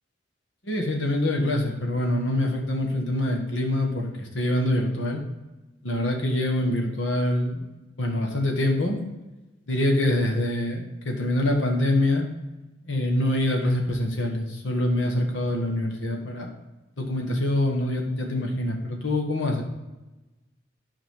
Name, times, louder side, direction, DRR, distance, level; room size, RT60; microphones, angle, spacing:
voice 1, 0.6-5.2 5.8-7.7 8.0-9.1 9.7-12.3 12.8-16.5 17.0-19.6, left 1 dB, 85° left, 1 dB, 1.6 m, -25 dB
10.5 x 4.9 x 3.7 m, 1.1 s
head